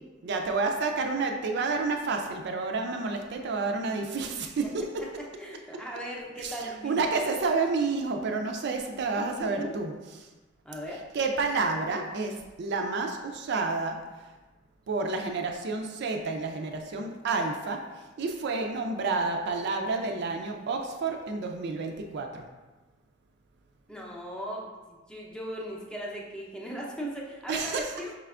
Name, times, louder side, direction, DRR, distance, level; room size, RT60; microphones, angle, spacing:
voice 1, 0.2-4.8 6.4-6.5 6.8-9.9 11.1-14.0 14.9-17.8 18.2-22.4 27.5-27.9, right 3 dB, 60° right, 4 dB, 0.4 m, -29 dB
voice 2, 5.2-7.0 9.2-9.7 10.6-11.1 23.9-28.2, equal, 5° left, -3 dB, 0.6 m, -38 dB
4.9 x 3.3 x 2.4 m, 1.2 s
head